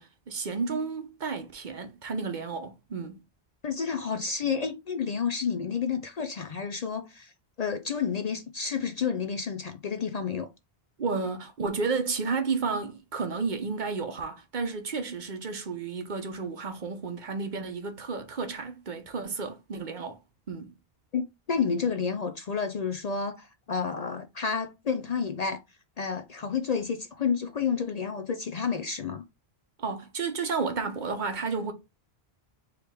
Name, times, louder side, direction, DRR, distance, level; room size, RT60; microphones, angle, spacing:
voice 1, 0.0-3.2 11.0-20.2 20.5-20.7 29.8-31.7, right 4 dB, 50° right, 0.9 m, -32 dB
voice 2, 3.6-7.3 7.6-10.5 21.1-25.6 26.0-29.2, left 6 dB, 50° left, 0.5 m, -30 dB
4.6 x 3.2 x 3.4 m
omnidirectional pair, 1.0 m